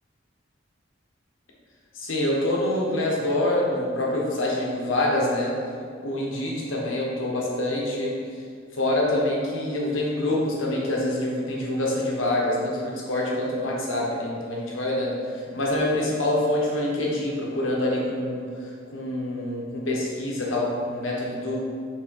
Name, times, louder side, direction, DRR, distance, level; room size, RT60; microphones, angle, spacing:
voice 1, 1.9-5.5 6.0-8.1 8.7-15.1 15.5-21.6, left 1 dB, 85° left, -3 dB, 1.3 m, -26 dB
6.1 x 3.7 x 4.8 m, 2.2 s
head